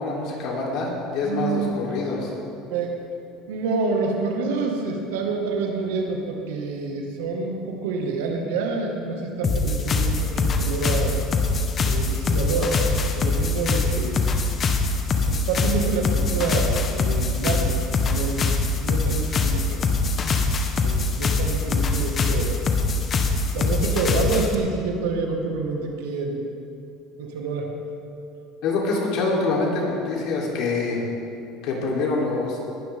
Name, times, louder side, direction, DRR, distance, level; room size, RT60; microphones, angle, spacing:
voice 1, 0.0-2.3 28.6-31.0 31.6-32.6, left 3 dB, 65° left, -3 dB, 3.7 m, -25 dB
voice 2, 1.2-1.7 2.7-2.9 3.5-11.2 11.8-12.8 13.2-14.3 15.3-18.5 18.8-19.8 20.8-22.6 23.5-26.4 27.2-27.7, right 4 dB, 85° right, 1 dB, 2.0 m, -27 dB
sound 1, 9.4-24.5, left 3 dB, 40° left, 1.4 m, -23 dB
20.0 x 11.0 x 3.8 m, 2.6 s
supercardioid pair, 90°, 0 cm